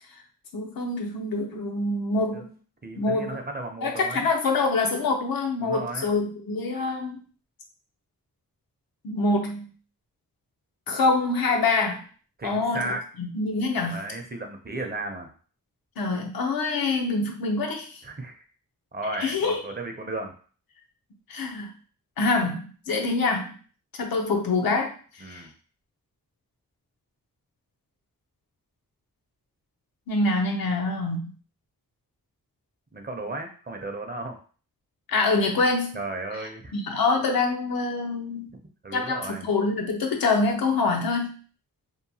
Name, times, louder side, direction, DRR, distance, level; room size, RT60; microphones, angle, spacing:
voice 1, 0.5-2.5 3.0-3.4 3.8-7.2 9.0-9.7 10.9-12.1 12.4-14.0 16.0-18.0 19.2-19.6 21.3-21.7 22.2-23.6 24.0-24.9 25.2-25.4 30.1-31.3 35.1-36.0 36.7-38.5 38.9-41.3, left 3 dB, 85° left, 2 dB, 0.7 m, -25 dB
voice 2, 2.8-4.3 5.6-6.1 12.4-13.0 13.8-15.3 18.0-18.4 18.9-20.3 25.2-25.5 32.9-34.4 35.9-36.7 38.8-39.5, right 2 dB, 30° right, 4 dB, 0.6 m, -34 dB
2.8 x 2.2 x 2.7 m, 0.41 s
cardioid pair, 75°, 34 cm